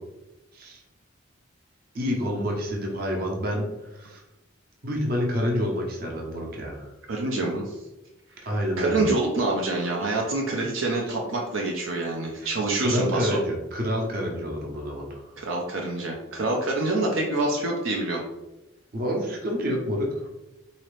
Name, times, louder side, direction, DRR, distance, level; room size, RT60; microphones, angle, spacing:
voice 1, 1.9-3.7 3.9-4.2 4.8-6.9 8.5-9.1 12.4-12.5 12.8-15.3 18.9-20.1, equal, 45° right, -1 dB, 0.8 m, -28 dB
voice 2, 7.1-7.8 8.4-8.5 8.8-13.4 15.4-18.2, right 2 dB, 75° right, -1 dB, 0.6 m, -26 dB
4.0 x 2.8 x 3.2 m, 0.99 s
head